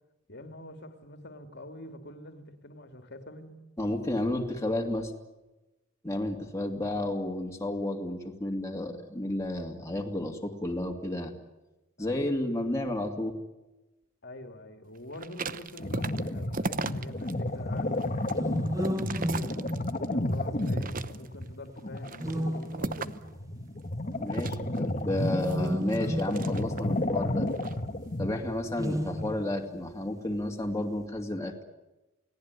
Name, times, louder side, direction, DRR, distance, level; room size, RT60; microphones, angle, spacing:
voice 1, 0.3-3.6 6.6-7.0 12.0-12.7 14.2-18.1 18.6-19.6 20.1-22.9, left 1 dB, 55° left, 7 dB, 2.6 m, -45 dB
voice 2, 3.8-5.1 6.0-11.3 12.0-13.4 24.2-27.5 28.2-31.5, left 1 dB, 15° left, 1 dB, 2.6 m, -32 dB
sound 1, 15.1-17.3 17.8-20.1 20.6-21.5 22.0-23.3 24.3-27.0 27.5-27.8, right 4 dB, 45° right, 0.9 m, -37 dB
sound 2, 15.8-29.3, left 1 dB, 40° left, 1.7 m, -32 dB
sound 3, 18.3-20.6 22.1-23.3 25.0-27.3 28.7-29.8, equal, 15° right, 1.5 m, -33 dB
29.5 x 18.5 x 9.8 m, 1.0 s
head